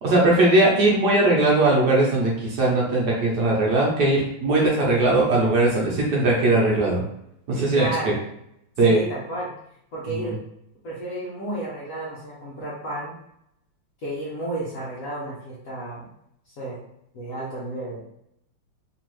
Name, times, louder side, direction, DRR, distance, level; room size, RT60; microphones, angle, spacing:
voice 1, 0.0-7.0 7.5-7.9 8.8-9.0 10.1-10.3, right 2 dB, 60° right, -3 dB, 1.3 m, -19 dB
voice 2, 7.7-8.2 8.8-9.5 9.9-10.4 10.8-13.2 14.0-16.1 16.6-16.8 17.1-18.0, right 2 dB, 55° left, -6 dB, 1.0 m, -31 dB
3.8 x 3.0 x 3.1 m, 0.76 s
omnidirectional pair, 2.3 m